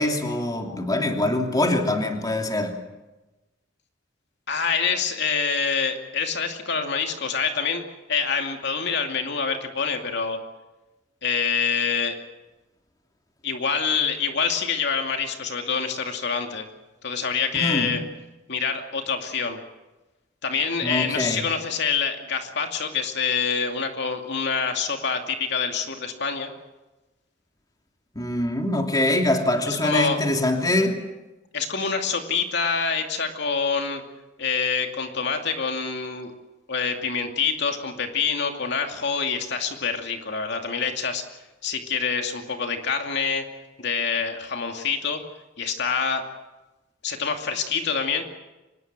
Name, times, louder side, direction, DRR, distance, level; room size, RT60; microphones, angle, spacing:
voice 1, 0.0-2.8 17.5-17.9 20.8-21.4 28.1-31.0, left 1 dB, 20° left, 2.9 m, -24 dB
voice 2, 4.5-7.8 8.1-10.4 11.2-12.2 13.4-16.7 17.0-18.0 18.5-19.6 20.4-26.5 29.7-30.2 31.5-34.0 34.4-36.3 36.7-41.2 41.6-43.5 43.8-45.2 45.6-46.3 47.0-48.2, left 5 dB, 65° left, 2.5 m, -26 dB
25.5 x 20.5 x 7.5 m
head